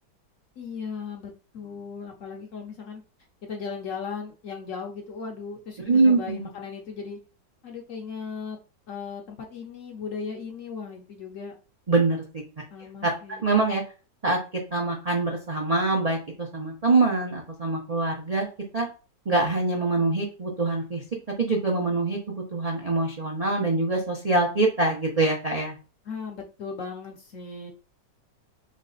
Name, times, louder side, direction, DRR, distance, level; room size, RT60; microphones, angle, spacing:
voice 1, 0.6-3.0 3.4-7.2 7.6-8.6 8.9-11.6 12.7-13.5 26.0-27.7, left 5 dB, 60° left, 2 dB, 0.9 m, -37 dB
voice 2, 5.9-6.4 11.9-12.4 13.0-13.1 13.4-13.8 14.2-14.4 14.7-18.5 18.7-18.9 19.3-21.0 21.4-25.8, right 3 dB, 55° right, -1 dB, 0.4 m, -24 dB
3.3 x 3.2 x 3.9 m, 0.34 s
omnidirectional pair, 1.9 m